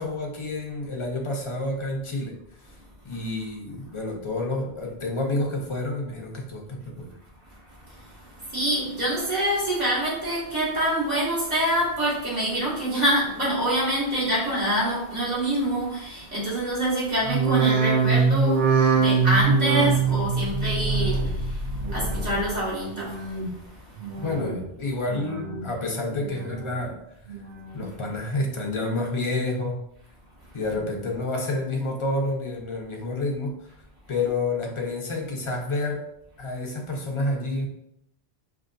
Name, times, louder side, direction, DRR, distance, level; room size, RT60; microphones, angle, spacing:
voice 1, 0.0-2.4 3.0-7.1 24.2-27.0 27.7-29.8 30.5-33.5 34.1-36.0 36.4-37.7, left 2 dB, 30° left, 1 dB, 0.7 m, -29 dB
voice 2, 7.9-24.2, right 1 dB, 40° right, -8 dB, 2.0 m, -26 dB
sound 1, 17.2-22.6 22.9-23.5 24.0-24.7 25.1-25.7 26.2-26.8 27.3-27.9 28.4-28.5, right 5 dB, 70° right, 0.9 m, -24 dB
5.6 x 3.0 x 2.6 m, 0.78 s
omnidirectional pair, 1.1 m